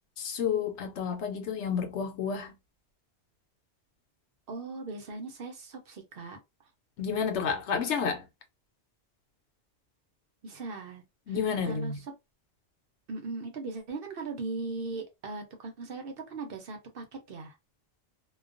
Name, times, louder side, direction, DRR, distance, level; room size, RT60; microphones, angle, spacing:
voice 1, 0.2-2.5 7.0-8.2 11.3-12.0, left 6 dB, 85° left, 1.0 m, -30 dB
voice 2, 4.5-6.4 10.4-11.4 11.6-11.9 13.1-17.6, right 3 dB, 60° right, 0.8 m, -39 dB
2.3 x 2.3 x 2.4 m
omnidirectional pair, 1.1 m